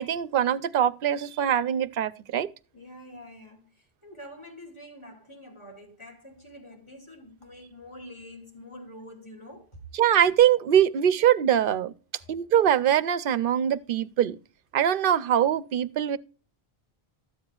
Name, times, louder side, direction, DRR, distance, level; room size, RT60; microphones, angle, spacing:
voice 1, 0.0-2.5 9.9-11.9 12.3-14.4 14.7-16.2, right 10 dB, 65° right, 0.7 m, -23 dB
voice 2, 2.7-9.8 12.2-12.3, left 1 dB, 30° left, 2.6 m, -46 dB
13.0 x 7.8 x 2.4 m
omnidirectional pair, 1.0 m